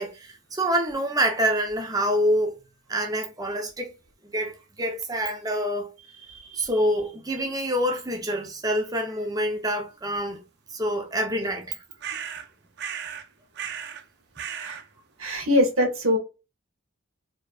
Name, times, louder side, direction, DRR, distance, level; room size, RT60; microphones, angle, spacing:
voice 1, 0.0-2.5 2.9-3.9 4.2-5.9 6.6-10.4 10.7-11.8, equal, 20° right, 0.8 m, -26 dB
voice 2, 6.3-6.9 7.4-7.5 14.5-14.8 15.2-16.2, left 1 dB, 85° right, 1.7 m, -25 dB
sound 1, 12.0-12.5 12.8-13.3 13.5-14.0 14.4-14.8, right 8 dB, 55° right, 0.6 m, -35 dB
4.5 x 3.1 x 2.4 m
head